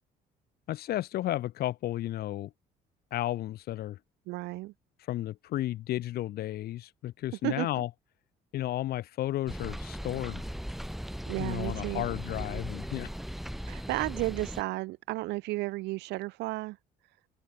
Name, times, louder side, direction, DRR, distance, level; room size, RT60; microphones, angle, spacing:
voice 1, 0.7-2.5 3.1-4.0 5.1-7.9 8.5-10.4 11.4-13.1, left 14 dB, 70° left, 1.2 m, -33 dB
voice 2, 4.3-4.7 7.4-7.8 11.3-12.1 13.7-16.8, right 20 dB, 90° right, 2.5 m, -33 dB
sound 1, 9.5-14.6, equal, ahead, 1.2 m, -38 dB
open air
cardioid pair, 110°, 17 cm